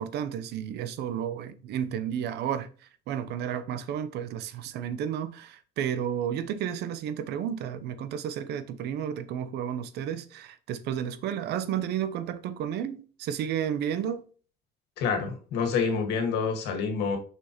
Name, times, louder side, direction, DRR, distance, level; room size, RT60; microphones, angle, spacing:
voice 1, 0.0-2.7 3.1-14.3, right 9 dB, 75° right, 0.8 m, -32 dB
voice 2, 15.0-17.2, left 5 dB, 85° left, 1.9 m, -27 dB
6.4 x 6.0 x 3.0 m
cardioid pair, 110°, 17 cm